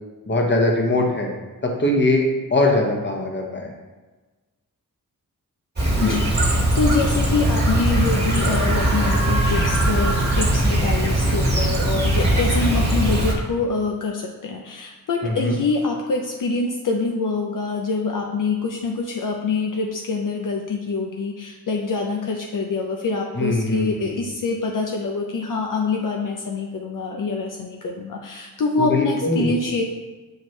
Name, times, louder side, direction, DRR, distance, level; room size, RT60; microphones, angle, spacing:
voice 1, 0.3-1.3 1.6-3.7 6.0-6.2 15.2-15.5 23.4-24.1 28.8-29.6, left 2 dB, 30° left, 1 dB, 1.1 m, -21 dB
Chirp tweet, 5.8-13.3, right 1 dB, 30° right, 1.6 m, -20 dB
voice 2, 6.0-30.1, left 4 dB, 65° left, 1 dB, 0.6 m, -25 dB
7.0 x 4.6 x 3.2 m, 1.3 s
wide cardioid pair, 110°, 35 cm